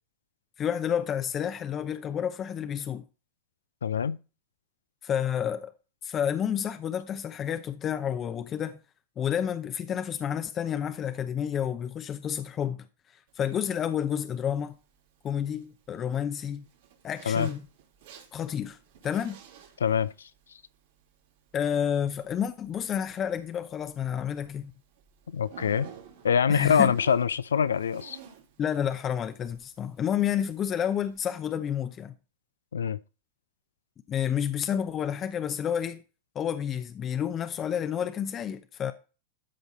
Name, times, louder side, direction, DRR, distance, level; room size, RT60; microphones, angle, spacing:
voice 1, 0.6-3.0 5.0-5.7 6.0-8.8 9.2-12.8 13.1-14.8 15.2-16.7 17.0-17.7 18.3-18.8 19.0-19.4 21.5-24.7 26.5-26.9 28.6-32.1 34.1-36.0 36.3-38.9, left 9 dB, 30° left, 0.7 m, -30 dB
voice 2, 3.8-4.2 17.3-17.5 19.8-20.3 25.3-25.9 26.2-28.2 32.7-33.0, left 7 dB, 85° left, 0.5 m, -24 dB
Zipper (clothing), 13.3-31.2, right 8 dB, 70° right, 3.3 m, -54 dB
13.0 x 5.2 x 4.2 m
hypercardioid pair, 100°, 0 cm